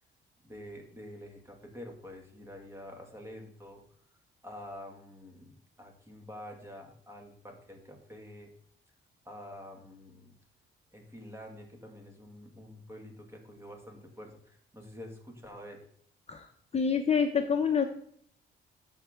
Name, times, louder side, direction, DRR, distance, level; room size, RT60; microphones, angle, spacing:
voice 1, 0.4-3.8 4.4-8.5 9.3-10.3 10.9-15.8, left 1 dB, 15° right, 2 dB, 2.2 m, -47 dB
voice 2, 16.7-17.9, left 6 dB, 30° left, 4 dB, 0.8 m, -26 dB
13.0 x 4.7 x 3.7 m, 0.63 s
cardioid pair, 90°, 20 cm